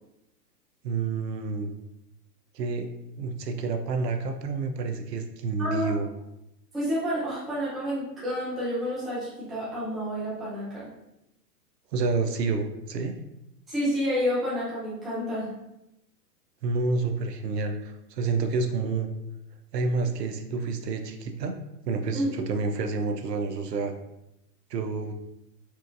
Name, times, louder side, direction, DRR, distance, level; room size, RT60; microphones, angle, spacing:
voice 1, 0.8-1.7 2.5-2.9 3.2-6.1 11.9-13.2 16.6-19.1 19.7-21.6 21.9-23.9 24.7-25.1, right 4 dB, 75° right, 6 dB, 0.6 m, -29 dB
voice 2, 5.6-6.0 6.7-10.9 13.7-15.5 22.1-22.3, equal, ahead, -10 dB, 0.4 m, -29 dB
4.4 x 2.5 x 2.4 m, 0.87 s
figure-of-eight pair, 110°, 49 cm